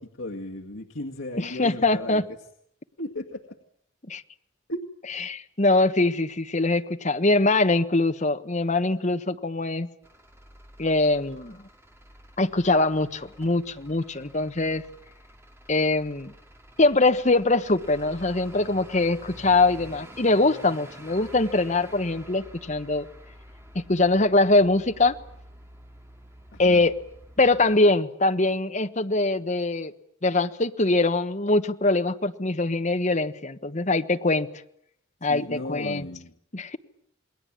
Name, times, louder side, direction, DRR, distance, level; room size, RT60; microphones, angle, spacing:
voice 1, 0.0-2.2 3.0-3.6 4.7-4.8 26.5-26.8 35.3-36.4, left 1 dB, 70° left, 0 dB, 2.0 m, -35 dB
voice 2, 1.4-2.2 4.1-4.2 5.3-9.9 10.8-11.6 12.4-14.8 15.7-16.3 16.8-23.0 23.7-25.2 26.6-26.9 27.4-29.9 30.2-34.5 35.2-36.0 36.5-36.8, left 2 dB, 35° left, 8 dB, 1.3 m, -23 dB
Truck / Idling, 10.0-27.7, equal, 15° right, 2.6 m, -48 dB
28.0 x 21.5 x 8.8 m, 0.72 s
head